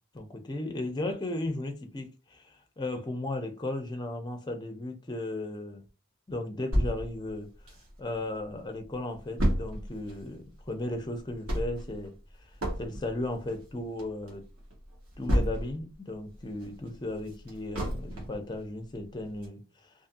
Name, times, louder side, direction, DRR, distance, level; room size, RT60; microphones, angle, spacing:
voice 1, 0.1-5.8 6.3-7.5 8.0-12.1 12.8-14.4 15.2-19.9, left 2 dB, 20° left, 0.5 m, -35 dB
sound 1, 6.7-8.3 8.7-8.8 8.9-15.9 16.3-18.5 18.9-19.0 19.4-19.5, equal, 70° right, 1.1 m, -31 dB
2.6 x 2.5 x 2.5 m
head